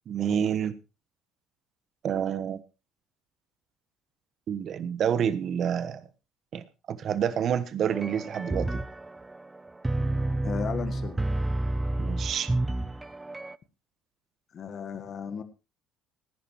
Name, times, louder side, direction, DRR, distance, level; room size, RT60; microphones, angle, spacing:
voice 1, 0.1-0.7 2.0-2.6 4.5-6.0 6.5-8.8 12.0-12.5, right 8 dB, 55° right, 14 dB, 1.2 m, -28 dB
sound 1, 7.9-13.6, right 2 dB, 15° right, 0.6 m, -30 dB
voice 2, 10.4-11.2 14.5-15.4, left 7 dB, 50° left, 10 dB, 1.4 m, -35 dB
18.5 x 10.0 x 3.1 m, 0.29 s
supercardioid pair, 70°, 0 cm